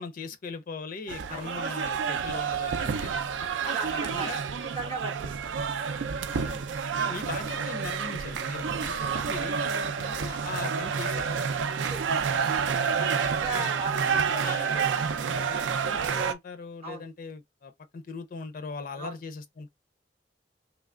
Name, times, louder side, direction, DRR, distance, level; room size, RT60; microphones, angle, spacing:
voice 1, 0.0-3.1 3.8-4.4 6.3-6.6 6.9-11.3 12.8-13.0 13.6-13.7 14.0-14.7 15.1-19.7, left 4 dB, 50° left, 0.4 m, -40 dB
sound 1, 1.1-16.3, right 6 dB, 85° right, 0.4 m, -29 dB
voice 2, 3.4-4.3 4.8-5.4 6.6-6.7 7.0-7.2 10.6-10.7 11.9-12.0 12.4-12.6 13.0-14.3 14.7-14.9 16.8-17.0 19.0-19.1, right 3 dB, 35° right, 0.6 m, -37 dB
3.2 x 3.0 x 2.4 m
head